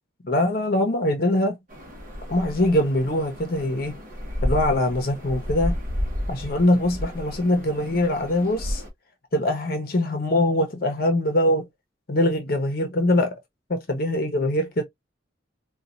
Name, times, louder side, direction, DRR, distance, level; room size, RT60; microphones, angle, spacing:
voice 1, 0.2-1.6 2.3-4.0 4.4-5.8 6.3-8.8 9.3-11.7 12.1-13.4 13.7-14.8, left 1 dB, 50° left, 0.7 m, -23 dB
sound 1, 1.7-8.9, equal, 45° right, 1.0 m, -32 dB
4.1 x 2.3 x 2.4 m
head